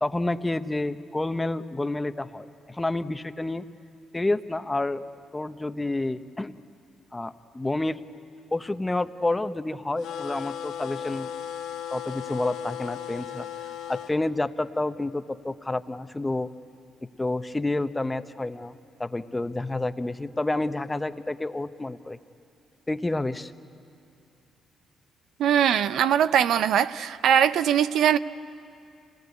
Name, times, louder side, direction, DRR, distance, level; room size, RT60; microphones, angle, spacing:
voice 1, 0.0-3.6 4.1-5.0 5.3-6.5 7.1-8.0 8.5-11.3 11.9-13.5 13.9-16.5 17.2-22.2 22.9-23.5, left 2 dB, 15° left, 11 dB, 0.8 m, -29 dB
sound 1, 10.0-14.1, left 9 dB, 90° left, 1.2 m, -36 dB
voice 2, 25.4-28.2, right 9 dB, 75° right, 14 dB, 0.5 m, -21 dB
26.0 x 18.5 x 9.5 m, 2.5 s
cardioid pair, 90°, 0 cm